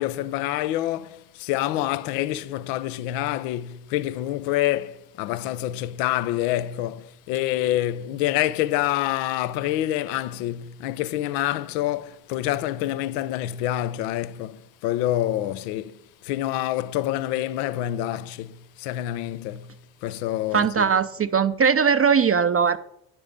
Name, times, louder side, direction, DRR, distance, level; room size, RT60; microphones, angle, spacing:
voice 1, 0.0-16.0 16.2-19.7 20.0-20.9, left 14 dB, 75° left, 0.8 m, -27 dB
voice 2, 20.5-22.8, right 6 dB, 30° right, 0.6 m, -20 dB
10.5 x 7.2 x 6.8 m
hypercardioid pair, 55°, 49 cm